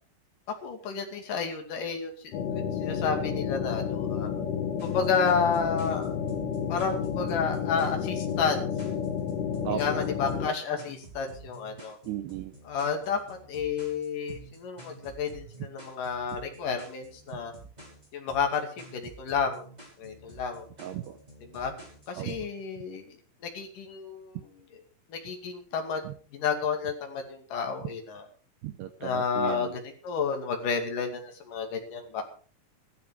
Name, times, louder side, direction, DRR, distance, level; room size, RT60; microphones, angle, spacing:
voice 1, 0.6-4.3 4.8-6.2 6.7-8.7 9.7-12.0 12.6-17.5 18.1-19.7 20.0-20.7 21.4-21.7 22.1-23.2 23.4-24.8 25.1-26.0 26.3-28.3 29.0-32.2, left 5 dB, 50° left, 3 dB, 3.5 m, -31 dB
sound 1, 2.3-10.5, left 7 dB, 80° left, 4.1 m, -31 dB
sound 2, 4.8-22.5, right 2 dB, 10° right, 5.4 m, -49 dB
voice 2, 12.1-12.5 20.8-21.2 22.2-22.4 26.0-26.1 28.6-29.7, right 11 dB, 75° right, 8 dB, 2.6 m, -35 dB
15.0 x 13.0 x 4.9 m, 0.43 s
omnidirectional pair, 5.7 m